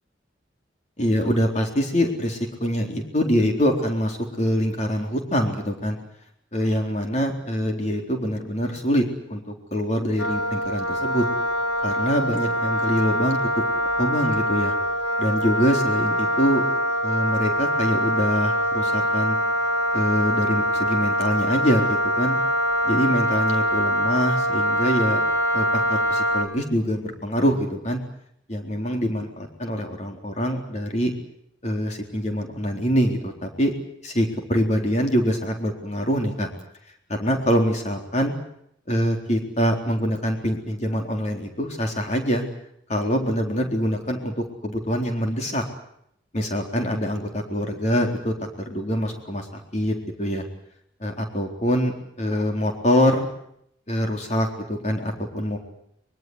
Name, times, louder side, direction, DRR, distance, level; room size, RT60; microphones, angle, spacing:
voice 1, 1.0-6.0 6.5-11.3 11.8-13.5 14.0-14.7 15.2-16.7 17.0-19.4 19.9-22.4 22.8-25.2 25.5-28.0 28.5-31.1 31.6-33.7 34.0-36.5 37.1-38.3 38.9-42.4 42.9-45.6 46.3-48.3 48.7-50.5 51.0-53.3 53.9-55.6, equal, 35° left, 3 dB, 4.0 m, -24 dB
Wind instrument woodwind instrument, 10.2-26.4, equal, 90° left, 4.3 m, -24 dB
24.0 x 23.0 x 8.1 m, 0.72 s
head